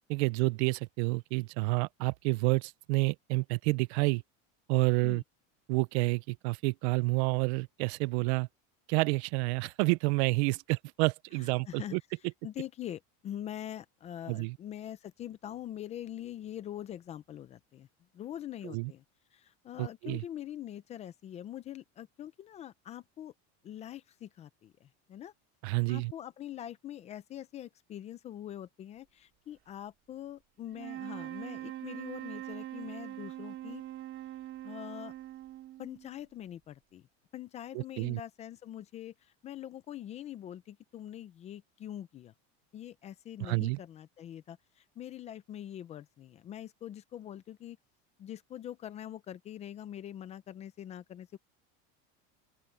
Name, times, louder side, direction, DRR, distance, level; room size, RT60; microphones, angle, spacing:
voice 1, 0.1-4.2 4.7-5.2 5.7-8.5 8.9-12.0 14.3-14.6 18.6-18.9 19.8-20.2 25.6-26.1 37.7-38.2 43.4-43.8, right 24 dB, 70° right, 0.6 m, -29 dB
voice 2, 11.4-12.0 12.4-17.9 18.1-19.0 19.3-23.3 23.6-25.3 25.9-33.8 34.6-35.1 35.8-37.1 37.3-42.3 42.7-47.8 48.2-51.4, left 11 dB, 20° left, 0.4 m, -44 dB
sound 1, 30.7-36.2, right 14 dB, 35° right, 3.2 m, -43 dB
open air
cardioid pair, 175°, 35 cm